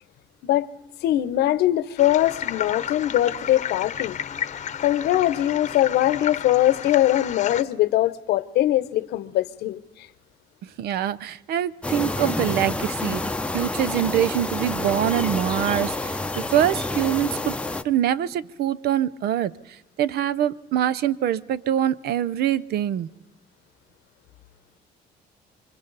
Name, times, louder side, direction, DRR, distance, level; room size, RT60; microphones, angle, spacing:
voice 1, 1.0-4.2 4.8-10.1, left 14 dB, 75° left, 0.9 m, -22 dB
sound 1, 2.0-7.6, left 9 dB, 45° left, 0.9 m, -32 dB
voice 2, 10.6-17.6 17.8-19.5 20.0-23.1, right 11 dB, 70° right, 0.7 m, -24 dB
sound 2, 11.8-17.8, left 2 dB, 5° left, 0.8 m, -28 dB
27.0 x 24.5 x 4.1 m
cardioid pair, 110°, 17 cm